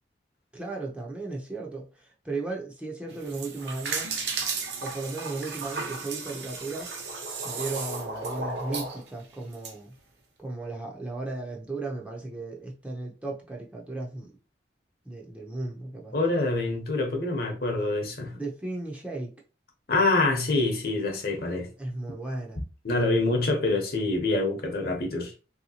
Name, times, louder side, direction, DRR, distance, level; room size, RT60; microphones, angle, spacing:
voice 1, 0.5-4.1 4.8-6.9 7.4-9.9 10.4-14.3 15.1-16.1 18.3-19.3 21.8-22.6, right 2 dB, 5° right, 0.5 m, -35 dB
sound 1, 3.1-9.7, right 4 dB, 65° right, 0.7 m, -34 dB
voice 2, 16.1-18.3 19.9-21.7 22.8-25.3, left 2 dB, 55° left, 0.8 m, -26 dB
3.2 x 2.8 x 2.7 m
head